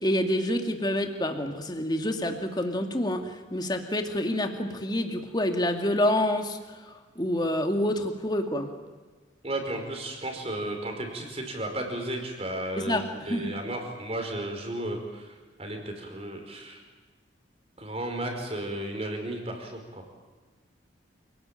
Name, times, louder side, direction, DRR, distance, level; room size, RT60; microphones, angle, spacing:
voice 1, 0.0-6.6 7.2-8.7 12.8-13.6, left 1 dB, 20° left, 5 dB, 2.3 m, -27 dB
voice 2, 9.4-15.3 15.6-16.8 17.8-20.1, right 1 dB, 30° right, 4 dB, 5.1 m, -34 dB
28.5 x 19.5 x 9.1 m, 1.4 s
head